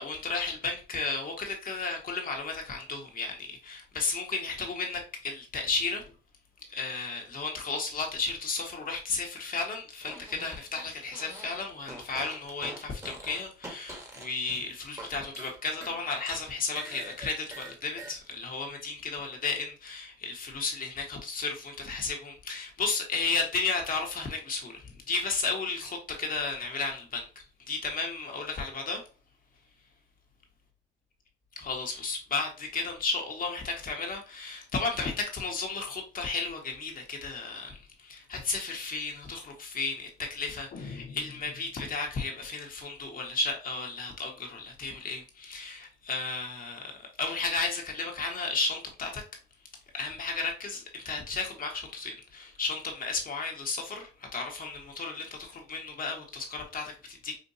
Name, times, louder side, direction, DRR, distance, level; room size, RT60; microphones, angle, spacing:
voice 1, 0.0-6.0 6.7-27.2 27.7-29.0 31.6-49.2 49.9-57.4, left 4 dB, 45° left, 1.3 m, -33 dB
Fart, 10.0-11.6 11.8-15.1 15.3-18.1, right 1 dB, 15° right, 1.4 m, -44 dB
sound 1, 40.7-42.3, left 4 dB, 60° left, 0.8 m, -45 dB
5.2 x 2.5 x 2.7 m
cardioid pair, 90°, 20 cm